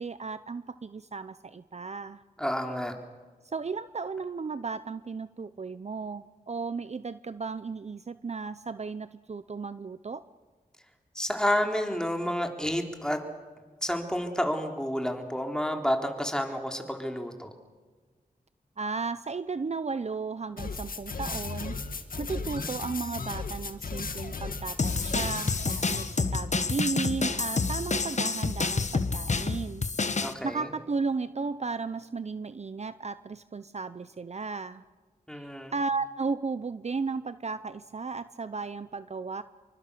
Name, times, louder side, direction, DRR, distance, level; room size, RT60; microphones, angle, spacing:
voice 1, 0.0-2.2 3.4-10.2 18.8-29.8 30.4-34.8 35.7-39.4, right 4 dB, 45° right, 13 dB, 0.7 m, -34 dB
voice 2, 2.4-2.9 11.1-13.2 13.8-17.5 30.2-30.7 35.3-35.7, equal, 5° left, 3 dB, 3.7 m, -30 dB
sound 1, 20.6-26.0, left 4 dB, 70° left, 2.0 m, -35 dB
sound 2, 24.8-30.3, left 4 dB, 50° left, 1.4 m, -28 dB
26.5 x 24.0 x 6.9 m, 1.4 s
wide cardioid pair, 65°, 15 cm